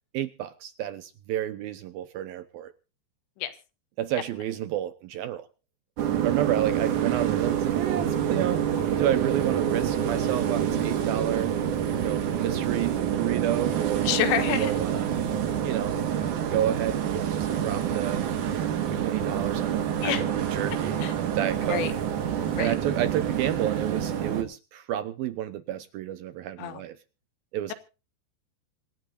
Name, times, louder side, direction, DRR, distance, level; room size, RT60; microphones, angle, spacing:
voice 1, 0.1-2.7 4.0-5.5 6.2-8.7 9.0-11.5 12.0-14.1 14.6-15.1 15.6-16.0 16.5-18.2 18.5-18.7 19.0-21.9 22.6-27.0 27.5-27.7, right 12 dB, 75° right, 12 dB, 2.3 m, -31 dB
sound 1, 6.0-24.4, right 9 dB, 55° right, 2.8 m, -27 dB
voice 2, 14.0-14.8 20.0-20.2 21.0-21.1 21.7-21.9 22.5-22.8 26.6-26.8, left 10 dB, 80° left, 10 dB, 3.8 m, -28 dB
26.5 x 12.0 x 2.7 m, 0.33 s
omnidirectional pair, 5.0 m